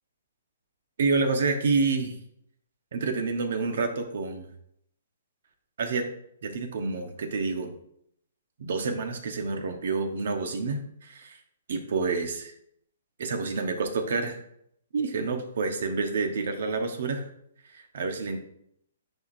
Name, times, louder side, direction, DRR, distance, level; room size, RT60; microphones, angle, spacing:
voice 1, 1.0-2.2 2.9-4.5 5.8-6.1 6.4-7.7 8.6-11.4 11.7-12.5 13.2-14.4 14.9-17.3 17.7-18.4, right 4 dB, 65° right, 5 dB, 1.1 m, -28 dB
9.3 x 4.6 x 2.6 m, 0.72 s
hypercardioid pair, 155°, 0 cm